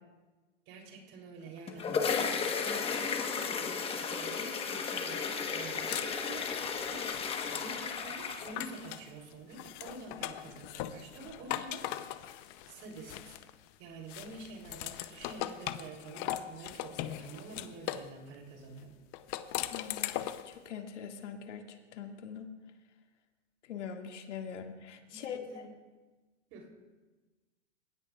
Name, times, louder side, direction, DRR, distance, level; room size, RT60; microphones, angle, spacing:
voice 1, 0.7-2.2 2.6-7.1 7.5-13.4 13.8-19.0 25.1-25.7 26.5-26.7, right 3 dB, 35° right, 2 dB, 3.3 m, -48 dB
sound 1, 1.5-8.9, left 5 dB, 15° left, 1.1 m, -34 dB
sound 2, 5.4-9.1 9.5-13.7 14.1-18.1 19.1-20.5, left 13 dB, 30° left, 0.7 m, -40 dB
voice 2, 19.7-22.5 23.7-25.4, left 7 dB, 70° left, 3 dB, 2.0 m, -43 dB
29.0 x 16.0 x 2.4 m, 1.3 s
hypercardioid pair, 140°, 37 cm